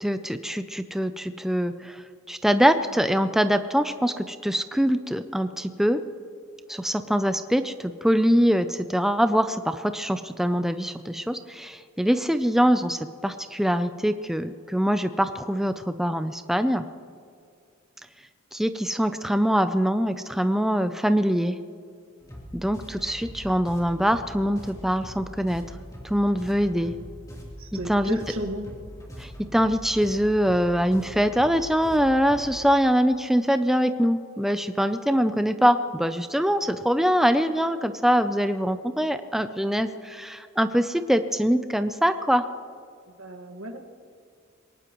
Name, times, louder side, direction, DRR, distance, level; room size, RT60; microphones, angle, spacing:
voice 1, 0.0-6.0 6.7-16.9 18.5-21.6 22.5-25.6 26.0-26.9 27.7-28.2 29.2-42.5, equal, ahead, 9 dB, 0.4 m, -23 dB
sound 1, 22.2-32.6, equal, 15° left, 3.2 m, -42 dB
voice 2, 27.6-28.7 43.1-43.8, right 1 dB, 75° right, 4 dB, 1.7 m, -34 dB
22.5 x 19.0 x 3.0 m, 2.2 s
head